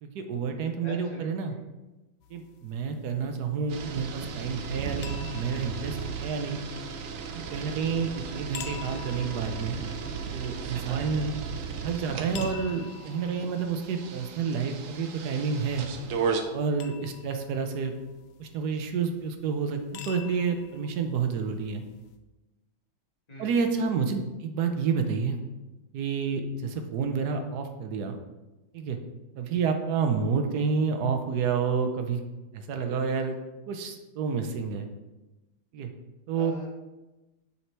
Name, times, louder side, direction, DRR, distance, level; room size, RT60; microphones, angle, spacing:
voice 1, 0.0-1.5 2.3-6.6 7.3-11.3 11.8-15.9 16.5-17.9 18.4-21.8 23.4-25.4 25.9-28.2 28.7-29.0 29.4-32.2 32.5-33.4 33.7-34.9 35.7-35.9 36.3-36.5, right 5 dB, 65° right, 6 dB, 1.1 m, -29 dB
voice 2, 0.8-1.6 23.3-23.8 36.3-36.7, left 1 dB, 20° left, -3 dB, 1.4 m, -42 dB
sound 1, 2.2-22.2, left 8 dB, 85° left, 1.4 m, -49 dB
sound 2, 3.7-16.4, right 6 dB, 85° right, 0.7 m, -35 dB
7.0 x 4.3 x 4.5 m, 1.1 s
omnidirectional pair, 2.2 m